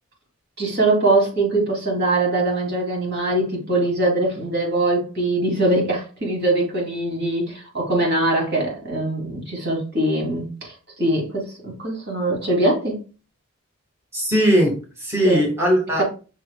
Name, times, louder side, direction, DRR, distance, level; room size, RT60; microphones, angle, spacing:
voice 1, 0.6-13.0 15.2-15.5 16.0-16.1, right 2 dB, 50° right, 2.9 m, -22 dB
voice 2, 14.1-16.0, equal, 10° right, 1.8 m, -19 dB
6.4 x 6.3 x 2.3 m
head